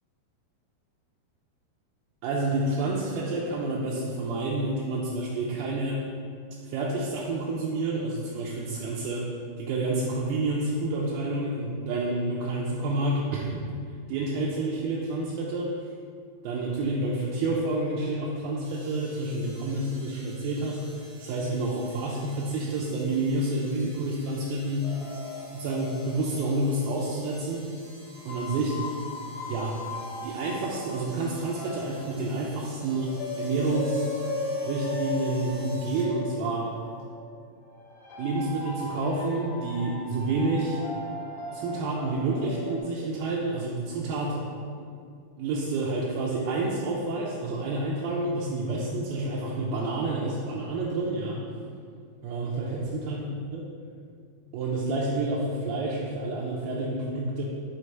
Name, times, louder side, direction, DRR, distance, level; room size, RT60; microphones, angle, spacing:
voice 1, 2.2-6.0 6.6-9.3 9.6-13.7 14.1-15.8 16.4-24.9 25.5-27.7 28.3-28.8 29.5-29.7 30.2-34.0 34.6-36.7 38.2-40.8 41.5-44.5 45.4-51.4 52.2-53.7 54.5-57.4, right 2 dB, 80° right, -4 dB, 2.2 m, -29 dB
sound 1, 18.6-36.1 37.0-37.1, right 2 dB, 60° right, 1.4 m, -52 dB
sound 2, 24.8-27.4 28.1-42.8, left 2 dB, 90° left, 2.9 m, -37 dB
6.4 x 3.3 x 4.5 m, 2.2 s
omnidirectional pair, 4.4 m